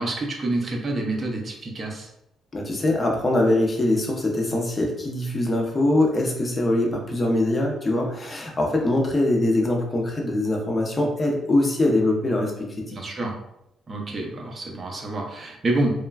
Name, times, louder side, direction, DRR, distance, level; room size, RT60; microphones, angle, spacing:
voice 1, 0.0-2.1 12.9-13.4 13.9-16.1, right 2 dB, 40° right, 1 dB, 0.6 m, -27 dB
voice 2, 2.5-13.0, left 1 dB, 25° left, 0 dB, 0.7 m, -23 dB
3.1 x 2.2 x 2.3 m, 0.80 s
cardioid pair, 90°, 0 cm